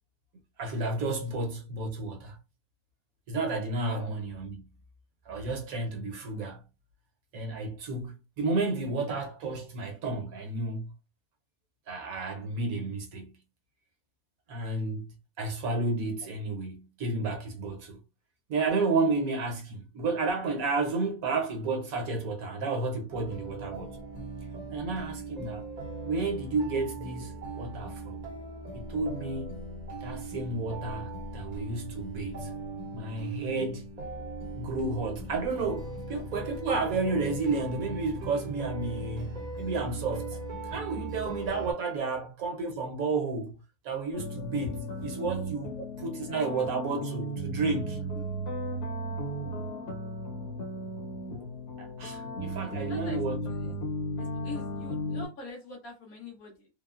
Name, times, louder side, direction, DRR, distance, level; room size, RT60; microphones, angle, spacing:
voice 1, 0.6-2.4 3.3-4.7 5.3-6.6 7.3-10.9 11.9-13.4 14.5-18.0 18.5-24.0 24.7-25.7 26.0-28.2 28.7-29.6 30.0-32.5 32.9-33.8 34.5-40.4 40.7-43.6 43.8-48.0 51.8-53.4 53.6-53.7, right 3 dB, 70° right, 1.1 m, -32 dB
Sad Guitar Piano Music, 23.1-41.7, right 2 dB, 40° right, 0.6 m, -39 dB
voice 2, 41.1-41.4 45.8-45.9 46.3-47.0 48.0-48.2 52.9-53.8 54.2-56.7, left 2 dB, 65° left, 1.5 m, -45 dB
sound 1, 44.1-55.3, equal, 85° left, 1.8 m, -35 dB
3.4 x 2.0 x 2.4 m
omnidirectional pair, 1.7 m